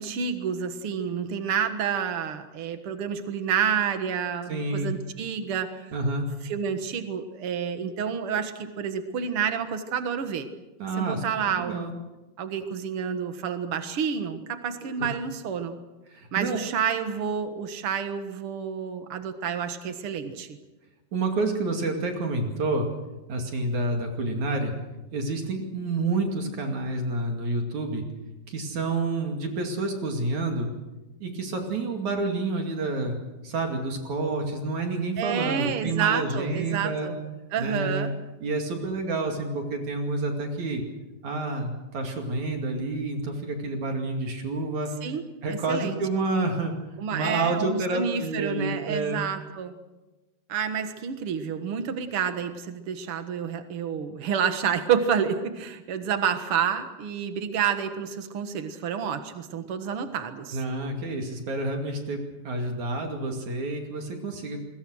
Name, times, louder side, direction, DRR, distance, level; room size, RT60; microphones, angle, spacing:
voice 1, 0.0-5.9 6.5-10.5 11.0-11.9 12.4-15.8 16.3-20.6 35.2-37.2 37.5-38.1 45.0-45.2 45.5-46.0 47.0-49.8 50.5-60.6, right 7 dB, 75° right, 8 dB, 1.2 m, -29 dB
voice 2, 4.5-4.9 5.9-6.3 10.8-11.9 14.8-15.2 16.1-16.6 21.1-22.9 23.3-24.7 25.1-28.0 28.5-30.7 31.2-33.2 33.4-37.1 37.6-38.1 38.4-40.8 41.2-44.9 45.4-46.7 47.1-49.2 60.5-64.6, right 2 dB, 50° right, 3 dB, 3.4 m, -29 dB
26.5 x 22.0 x 6.4 m, 1.1 s
omnidirectional pair, 4.9 m